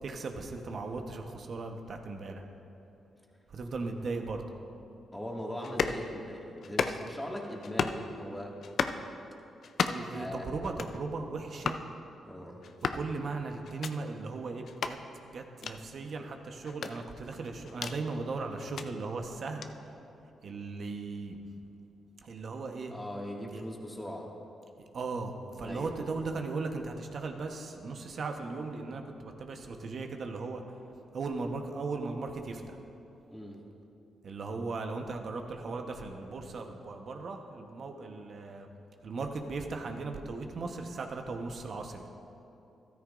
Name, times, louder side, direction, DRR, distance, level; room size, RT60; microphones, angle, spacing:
voice 1, 0.0-2.4 3.5-4.4 9.9-11.8 12.8-19.9 20.4-21.4 22.2-22.9 23.5-23.6 24.9-30.6 31.1-32.8 34.2-38.7 39.0-42.1, right 3 dB, 60° right, 4 dB, 1.0 m, -37 dB
voice 2, 5.1-8.6 10.1-10.5 12.2-12.6 22.9-24.3 25.6-26.0 33.3-33.6, equal, 10° left, -2 dB, 2.0 m, -40 dB
sound 1, 5.6-6.0 6.6-7.2 7.6-8.0 8.6-9.0 9.6-10.1 10.6-11.0 11.6-11.8 12.6-13.1 13.6-13.9 14.6-15.0 15.6-15.8 16.6-18.0 18.6-18.9 19.6-19.7, left 6 dB, 65° left, 0.5 m, -33 dB
14.0 x 13.0 x 2.5 m, 2.9 s
cardioid pair, 65°, 0 cm